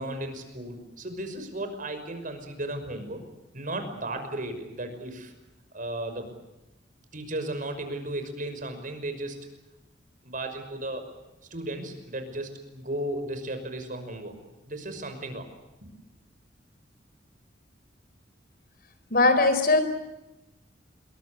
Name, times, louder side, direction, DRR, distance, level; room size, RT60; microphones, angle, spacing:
voice 1, 0.0-3.2 3.5-5.3 5.7-6.3 7.1-9.5 10.2-11.1 11.5-14.4 14.7-15.5 15.8-15.9, right 1 dB, 45° right, 8 dB, 5.8 m, -35 dB
voice 2, 19.1-19.8, left 2 dB, 55° left, 9 dB, 4.2 m, -20 dB
27.5 x 23.5 x 8.2 m, 0.99 s
head